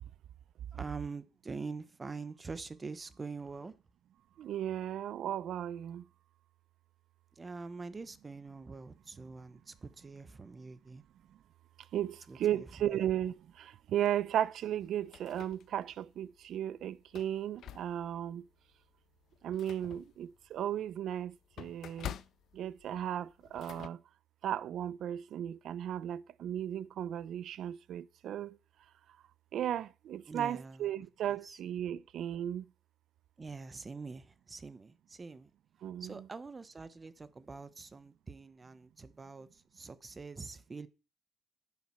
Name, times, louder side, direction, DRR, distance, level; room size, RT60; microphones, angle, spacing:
voice 1, 0.7-3.7 7.3-11.0 12.3-12.7 30.3-30.9 31.4-31.6 33.4-35.5 36.0-40.9, right 4 dB, 30° right, 1.0 m, -45 dB
voice 2, 4.4-6.0 11.9-18.4 19.4-22.2 22.5-24.0 24.4-28.6 29.5-32.7 35.8-36.3, right 11 dB, 75° right, 0.6 m, -35 dB
sound 1, 14.8-16.0 16.5-16.6 17.0-18.3 18.7-18.9 19.2-23.9, left 11 dB, 70° left, 0.5 m, -48 dB
10.5 x 7.5 x 5.8 m
cardioid pair, 90°, 0 cm